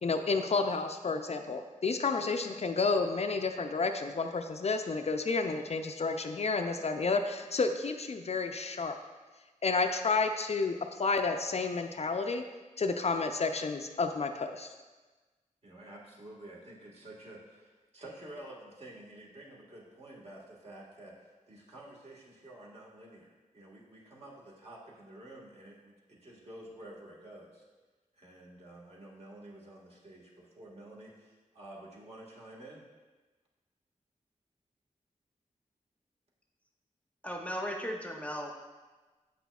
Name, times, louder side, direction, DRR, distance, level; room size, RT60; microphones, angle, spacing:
voice 1, 0.0-9.0 9.6-12.4 12.8-14.7, left 4 dB, 50° left, 6 dB, 0.4 m, -31 dB
voice 2, 15.6-27.6 28.2-32.9, right 1 dB, 50° right, -4 dB, 1.6 m, -50 dB
voice 3, 37.2-38.5, equal, 10° left, 1 dB, 0.7 m, -36 dB
7.8 x 5.9 x 2.3 m, 1.3 s
cardioid pair, 60°, 14 cm